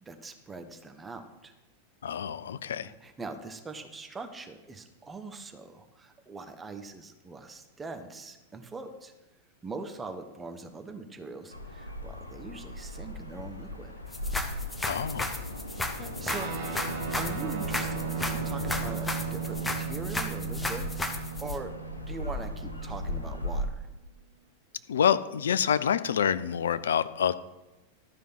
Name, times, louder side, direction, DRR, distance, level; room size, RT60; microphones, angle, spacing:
voice 1, 0.0-1.5 2.7-9.1 9.6-13.9 16.0-16.8 17.1-20.9 21.4-23.9, right 3 dB, 15° right, 6 dB, 1.0 m, -42 dB
voice 2, 2.0-2.9 14.8-15.3 24.9-27.3, left 8 dB, 65° left, 15 dB, 0.4 m, -27 dB
sound 1, 11.5-23.7, left 1 dB, 85° left, 1.0 m, -37 dB
sound 2, 14.1-21.6, left 2 dB, 10° left, 1.0 m, -34 dB
Guitar, 16.3-23.9, right 10 dB, 55° right, 1.7 m, -38 dB
12.5 x 5.3 x 6.0 m, 1.1 s
figure-of-eight pair, 90°, 0 cm